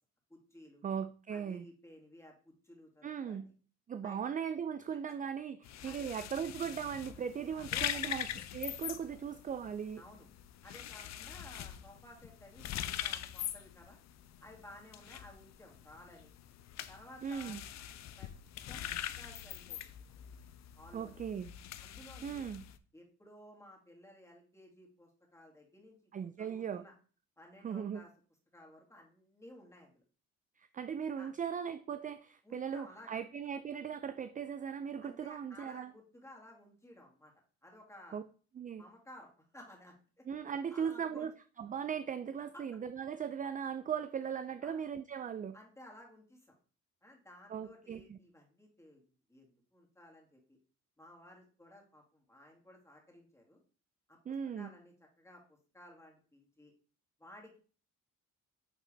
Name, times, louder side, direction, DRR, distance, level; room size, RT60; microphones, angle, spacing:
voice 1, 0.3-0.8 1.3-3.5 4.0-4.2 5.1-5.2 5.8-6.1 7.5-8.3 10.0-10.3 10.6-14.0 14.4-16.3 16.9-17.6 18.2-18.3 18.7-20.1 20.8-21.2 21.8-22.5 22.9-26.1 26.4-26.9 27.4-28.1 28.5-30.0 31.2-31.3 32.4-33.2 35.0-37.3 37.6-38.2 38.8-40.2 40.7-41.2 42.5-42.6 44.6-44.8 45.5-46.5 47.0-49.0 49.3-50.6 51.0-53.6 54.1-54.2 54.6-56.7 57.2-57.6, left 1 dB, 10° left, 0 dB, 2.2 m, -56 dB
voice 2, 0.8-1.7 3.0-3.5 3.9-8.3 8.5-10.0 17.2-17.6 20.9-21.5 22.2-22.7 26.1-26.8 27.6-28.0 30.6-35.9 38.1-38.2 38.6-38.8 40.2-41.3 41.6-45.6 47.5-48.2 54.3-54.7, right 7 dB, 30° right, 11 dB, 0.4 m, -38 dB
sound 1, 5.6-22.8, left 11 dB, 60° left, 0.5 m, -43 dB
9.0 x 3.7 x 3.3 m, 0.40 s
cardioid pair, 90°, 30 cm